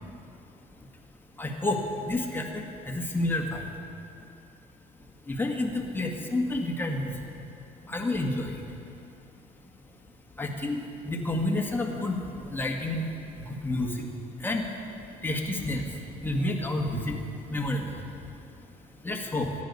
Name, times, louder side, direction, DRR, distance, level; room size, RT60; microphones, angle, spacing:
voice 1, 1.4-3.7 5.2-7.3 7.8-8.6 10.4-13.1 13.3-14.1 14.4-14.7 15.2-18.3 19.0-19.5, left 1 dB, 10° left, 1 dB, 1.6 m, -30 dB
14.0 x 9.8 x 5.5 m, 2.7 s
cardioid pair, 110°, 17 cm